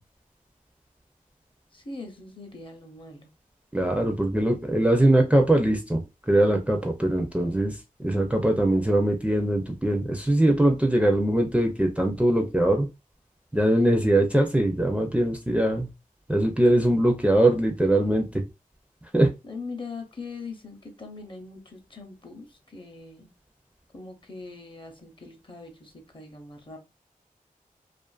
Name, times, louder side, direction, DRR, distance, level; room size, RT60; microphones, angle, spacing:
voice 1, 1.7-3.3 19.4-23.3 23.9-26.8, left 3 dB, 35° left, 3 dB, 0.7 m, -41 dB
voice 2, 3.7-12.9 13.5-15.9 16.3-18.4 19.1-19.3, right 1 dB, 10° right, 3 dB, 0.5 m, -22 dB
2.5 x 2.5 x 2.4 m, 0.26 s
wide cardioid pair, 65°, 15 cm